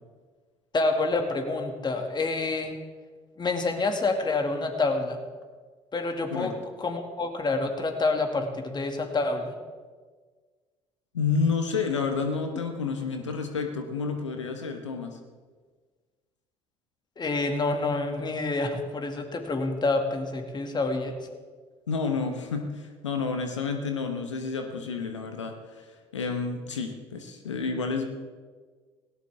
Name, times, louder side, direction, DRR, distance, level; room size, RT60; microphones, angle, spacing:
voice 1, 0.7-2.7 3.4-5.2 5.9-6.5 6.8-9.5 17.2-21.1, left 3 dB, 30° left, 4 dB, 2.4 m, -27 dB
voice 2, 11.1-15.2 21.9-28.0, left 5 dB, 85° left, 5 dB, 1.1 m, -30 dB
18.0 x 17.0 x 3.7 m, 1.5 s
hypercardioid pair, 60°, 15 cm